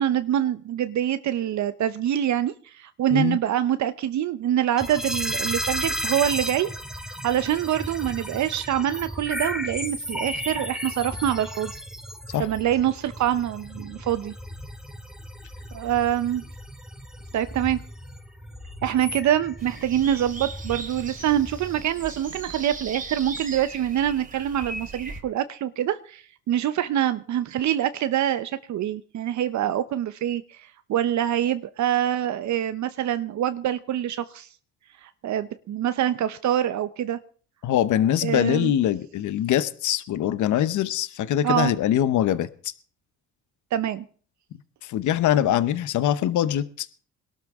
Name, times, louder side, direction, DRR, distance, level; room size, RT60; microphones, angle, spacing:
voice 1, 0.0-6.7 7.2-11.7 12.4-14.3 15.7-16.4 17.3-17.8 18.8-34.5 35.0-37.2 38.2-38.7 41.4-41.7 43.7-44.0, right 11 dB, 70° right, 11 dB, 0.8 m, -25 dB
sound 1, 4.8-21.8, equal, ahead, 2.4 m, -34 dB
sound 2, 19.6-25.2, right 3 dB, 25° right, 2.7 m, -38 dB
voice 2, 37.6-42.7 44.8-46.9, left 11 dB, 75° left, 15 dB, 0.9 m, -23 dB
21.5 x 12.5 x 3.6 m, 0.43 s
cardioid pair, 90°, 30 cm